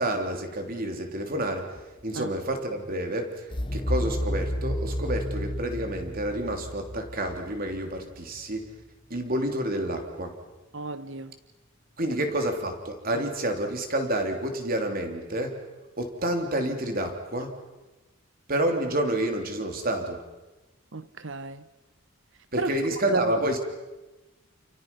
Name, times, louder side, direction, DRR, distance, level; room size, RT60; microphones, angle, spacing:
voice 1, 0.0-8.7 9.1-10.4 12.0-15.6 16.0-17.5 18.5-20.2 22.5-23.6, right 1 dB, 45° right, 3.3 m, -29 dB
sound 1, 3.5-8.4, equal, 25° left, 1.1 m, -31 dB
voice 2, 10.7-11.4 13.1-13.2 20.9-21.7 22.6-22.7 23.1-23.4, right 3 dB, 65° right, 1.1 m, -32 dB
29.5 x 29.5 x 5.5 m
head